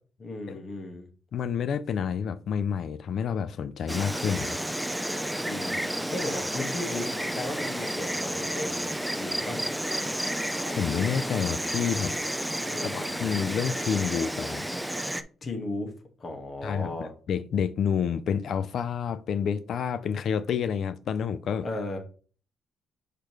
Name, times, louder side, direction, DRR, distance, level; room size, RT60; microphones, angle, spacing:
voice 1, 0.2-1.1 5.4-9.6 12.6-13.1 15.4-15.9 16.2-17.1 21.6-22.0, left 2 dB, 40° left, 1.5 m, -36 dB
voice 2, 1.3-4.6 10.2-10.3 10.7-12.2 12.9-14.7 16.6-16.9 17.3-21.7, left 7 dB, 65° left, 0.5 m, -29 dB
Insect, 3.9-15.2, equal, 5° right, 0.5 m, -31 dB
6.7 x 5.0 x 3.1 m
cardioid pair, 90°, 0 cm